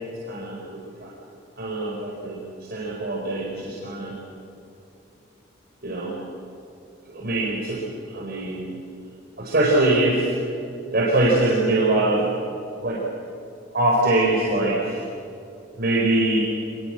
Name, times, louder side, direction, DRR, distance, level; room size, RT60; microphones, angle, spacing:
voice 1, 0.3-1.1 1.6-2.4 2.7-4.1 5.8-6.1 7.1-7.8 8.1-8.7 9.4-10.3 10.9-12.3 12.8-13.0 13.7-15.0 15.8-16.4, right 2 dB, 50° right, -4 dB, 4.5 m, -22 dB
27.0 x 21.0 x 7.7 m, 2.8 s
head